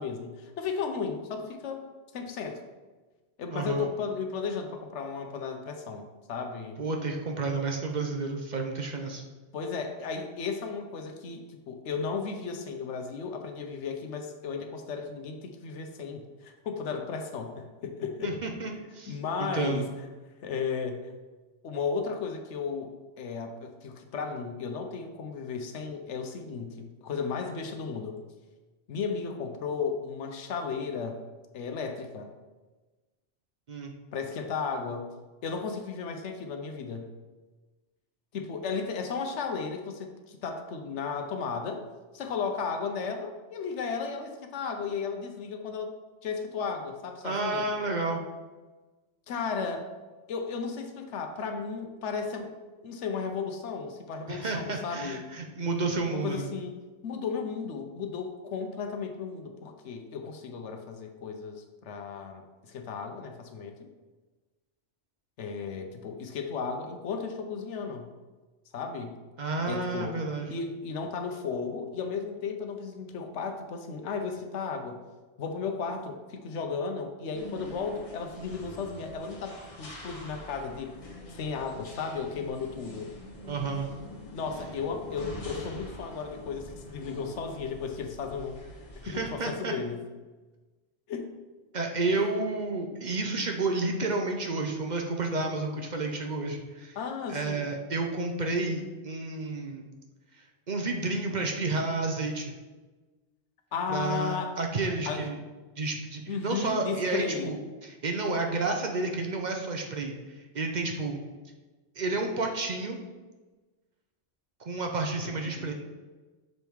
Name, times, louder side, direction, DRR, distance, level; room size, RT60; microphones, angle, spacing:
voice 1, 0.0-1.9 2.1-2.6 3.4-6.8 9.5-18.4 19.1-19.9 20.4-21.1 21.6-28.2 28.9-31.2 31.5-32.3 34.1-35.1 35.4-37.1 38.3-41.8 42.1-45.9 46.2-47.7 49.3-49.9 50.3-52.6 52.8-55.2 56.1-56.7 57.0-63.9 65.4-68.1 68.7-69.2 69.6-70.2 70.5-75.0 75.4-81.0 81.3-83.1 84.3-88.6 89.1-90.0 91.1-91.3 97.0-97.7 103.7-104.6 105.1-105.3 106.3-107.5 115.2-115.7, left 5 dB, 90° left, 5 dB, 1.1 m, -34 dB
voice 2, 3.5-3.9 6.8-9.2 18.2-19.9 33.7-33.9 47.2-48.2 54.3-56.5 69.4-70.5 83.5-83.9 89.0-89.7 91.7-97.0 97.3-99.9 100.7-102.5 103.9-105.4 105.8-111.2 112.0-113.0 114.6-115.7, right 3 dB, 50° right, 3 dB, 0.7 m, -31 dB
sound 1, 77.3-89.3, left 1 dB, 35° left, 0.9 m, -45 dB
6.5 x 3.5 x 4.5 m, 1.2 s
omnidirectional pair, 1.2 m